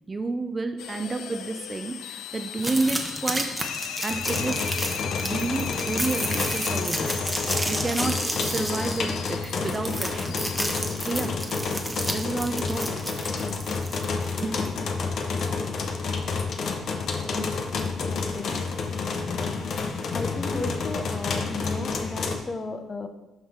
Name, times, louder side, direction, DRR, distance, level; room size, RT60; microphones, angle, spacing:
voice 1, 0.1-3.5 4.0-4.6 5.2-7.2 7.7-10.4 11.0-11.4 12.1-13.0 13.3-13.4 14.4-14.7, right 3 dB, 25° right, 8 dB, 0.5 m, -30 dB
sound 1, 0.8-10.6, left 10 dB, 85° left, 0.3 m, -37 dB
sound 2, 2.6-14.3, right 1 dB, 10° right, 1.0 m, -32 dB
sound 3, 4.1-22.4, left 4 dB, 60° left, 0.8 m, -29 dB
voice 2, 17.2-18.6 20.1-23.1, left 3 dB, 30° left, 7 dB, 0.7 m, -35 dB
11.0 x 3.9 x 3.6 m, 1.0 s
cardioid pair, 90°, 0 cm